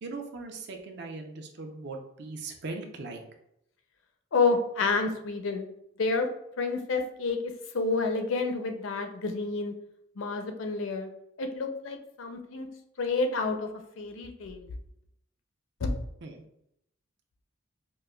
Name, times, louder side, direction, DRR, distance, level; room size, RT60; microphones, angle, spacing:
voice 1, 0.0-3.2 16.2-16.3, right 3 dB, 55° right, 3 dB, 0.5 m, -39 dB
voice 2, 4.3-5.7 6.0-6.3 6.6-9.7 10.2-11.1 11.4-12.7 13.0-13.7 14.0-14.7 15.8-15.9, left 3 dB, 80° left, 6 dB, 0.5 m, -29 dB
5.0 x 2.1 x 2.3 m, 0.77 s
head